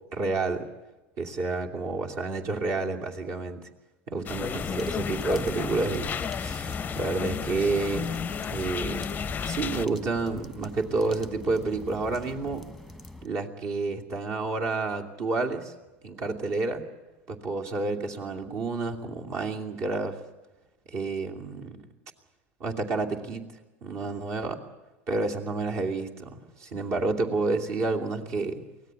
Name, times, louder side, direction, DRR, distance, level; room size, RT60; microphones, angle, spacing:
voice 1, 0.1-0.7 1.2-3.6 4.1-8.1 8.5-9.1 9.5-12.6 13.2-15.7 16.0-16.8 17.3-20.2 20.9-21.8 22.6-23.4 23.8-24.6 25.1-28.6, right 3 dB, 50° right, 1 dB, 2.7 m, -30 dB
sound 1, 4.3-9.9, left 7 dB, 25° left, 0.6 m, -33 dB
sound 2, 4.5-13.3, left 1 dB, 5° right, 1.3 m, -41 dB
24.0 x 17.5 x 8.3 m, 1.1 s
supercardioid pair, 115°, 7 cm